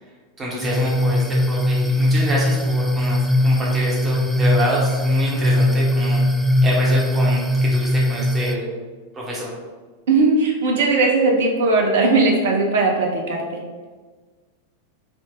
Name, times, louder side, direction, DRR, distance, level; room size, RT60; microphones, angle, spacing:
voice 1, 0.4-6.2 6.6-8.7 9.1-9.6, equal, 20° right, -4 dB, 1.2 m, -27 dB
sound 1, 0.6-8.5, left 1 dB, ahead, 0.3 m, -19 dB
voice 2, 10.1-13.6, right 3 dB, 60° right, 1 dB, 0.5 m, -18 dB
3.5 x 2.4 x 3.8 m, 1.4 s
figure-of-eight pair, 90°, 0 cm